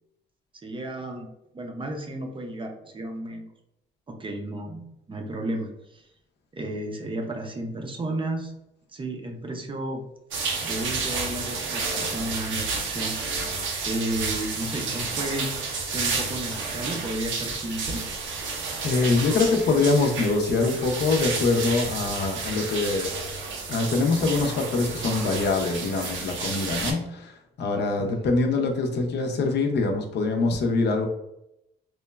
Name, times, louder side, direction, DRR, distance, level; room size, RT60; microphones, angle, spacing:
voice 1, 0.6-1.3 1.5-3.4 4.1-6.0 6.5-8.5 8.9-10.0 10.6-13.1 13.8-15.5 15.8-18.0 28.0-28.1, right 1 dB, 25° right, 3 dB, 0.4 m, -33 dB
sound 1, 10.3-26.9, right 4 dB, 75° right, 0.6 m, -31 dB
voice 2, 18.8-23.1 23.7-31.1, left 3 dB, 60° left, 3 dB, 0.5 m, -24 dB
3.0 x 2.0 x 2.2 m, 0.82 s
cardioid pair, 90°, 20 cm